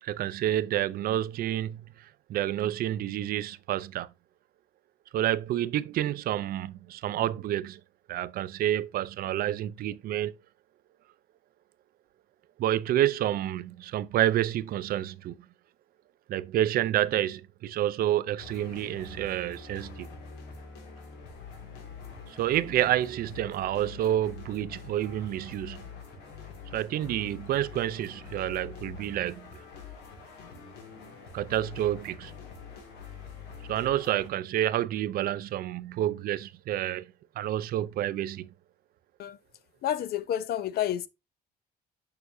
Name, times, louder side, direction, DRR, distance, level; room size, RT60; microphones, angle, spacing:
voice 1, 0.0-4.1 5.1-7.8 8.1-10.3 12.6-15.3 16.3-20.1 22.3-25.8 26.7-29.5 31.3-32.3 33.7-37.1 37.4-38.5, right 12 dB, 60° right, 0.5 m, -29 dB
sound 1, 18.4-34.3, left 5 dB, 85° left, 2.2 m, -45 dB
voice 2, 39.8-41.1, left 11 dB, 65° left, 0.7 m, -29 dB
6.7 x 5.7 x 2.6 m
cardioid pair, 110°, 17 cm